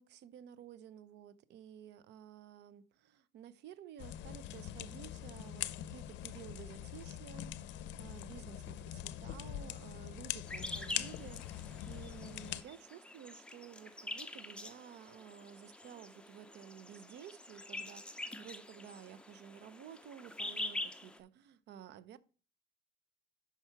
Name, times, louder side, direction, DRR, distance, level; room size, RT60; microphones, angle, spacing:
voice 1, 0.0-22.2, right 9 dB, 75° right, 0.5 m, -53 dB
sound 1, 4.0-12.6, left 12 dB, 85° left, 0.5 m, -43 dB
sound 2, 10.5-21.2, left 2 dB, 5° left, 0.6 m, -46 dB
5.8 x 5.7 x 4.5 m
cardioid pair, 105°, 18 cm